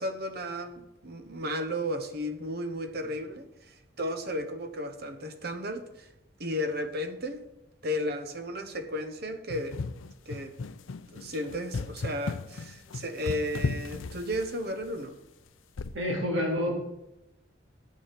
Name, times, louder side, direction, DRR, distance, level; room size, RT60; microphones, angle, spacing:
voice 1, 0.0-6.1 6.4-7.5 7.8-9.8 10.3-10.5 11.1-15.2, equal, 55° right, 9 dB, 1.1 m, -34 dB
sound 1, 9.5-14.8 15.8-16.1, left 4 dB, 90° left, 0.5 m, -35 dB
voice 2, 15.9-16.8, equal, 75° right, 0 dB, 3.0 m, -28 dB
8.5 x 7.7 x 6.7 m, 0.89 s
head